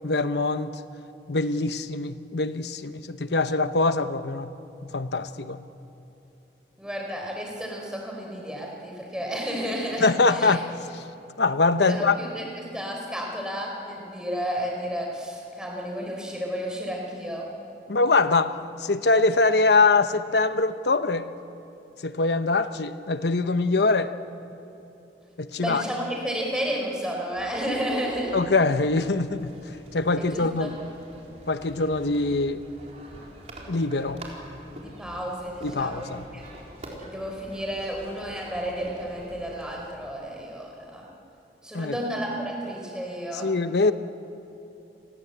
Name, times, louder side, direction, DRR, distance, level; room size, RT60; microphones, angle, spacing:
voice 1, 0.0-0.7 1.3-4.5 4.9-5.6 10.0-11.0 11.4-12.2 17.9-21.3 22.0-24.1 25.4-25.8 28.3-29.5 29.9-30.7 31.5-32.6 33.7-34.2 35.6-36.2 41.7-42.0 43.4-43.9, left 3 dB, 75° left, 11 dB, 1.0 m, -23 dB
voice 2, 6.8-10.6 11.9-12.4 12.7-17.5 25.6-28.4 30.2-30.7 34.8-36.1 36.3-36.4 37.0-41.1 41.6-43.5, equal, 5° right, -1 dB, 4.6 m, -32 dB
sound 1, 27.3-39.9, right 1 dB, 40° right, 4.3 m, -46 dB
30.0 x 21.0 x 8.1 m, 2.8 s
head